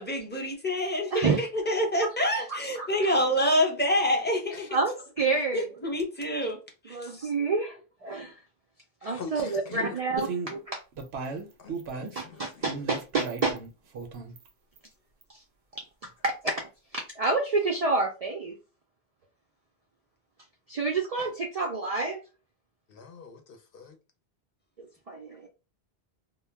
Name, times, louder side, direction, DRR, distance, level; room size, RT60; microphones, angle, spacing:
voice 1, 0.0-4.7 5.5-6.6 6.9-7.3, equal, 10° left, 0.6 m, -27 dB
voice 2, 2.5-2.9 4.7-5.7 6.9-7.8 8.0-8.4 9.0-10.8 12.0-13.5 15.3-15.4 15.7-18.6 20.7-22.2 24.8-25.5, right 3 dB, 55° right, 0.4 m, -29 dB
voice 3, 9.0-10.2 11.6-12.6 22.9-24.0, left 5 dB, 65° left, 0.8 m, -44 dB
sound 1, 10.2-10.5 10.9-12.2 12.7-13.7 13.9-14.5 14.8-14.9 15.2-15.3, right 4 dB, 80° right, 0.8 m, -36 dB
2.2 x 2.0 x 3.3 m
omnidirectional pair, 1.1 m